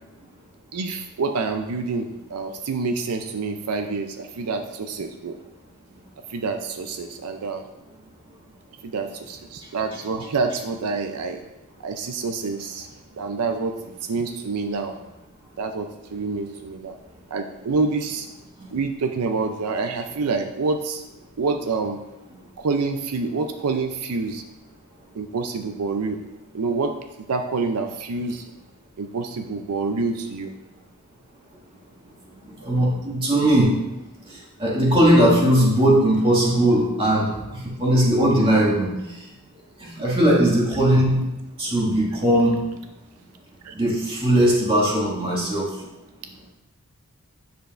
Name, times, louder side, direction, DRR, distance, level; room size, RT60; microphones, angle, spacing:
voice 1, 0.7-5.4 6.3-7.6 8.8-11.4 11.8-12.9 13.2-15.0 15.6-17.0 17.3-18.3 18.7-21.0 21.4-22.0 22.6-24.4 25.1-26.2 26.5-26.9 27.3-28.5 29.0-30.5 43.6-43.7, right 4 dB, 90° right, 6 dB, 0.5 m, -27 dB
voice 2, 32.4-33.7 34.3-39.3 39.8-41.3 41.6-42.6 43.7-45.7, right 1 dB, 25° right, -5 dB, 2.0 m, -19 dB
9.1 x 6.9 x 2.5 m, 0.96 s
head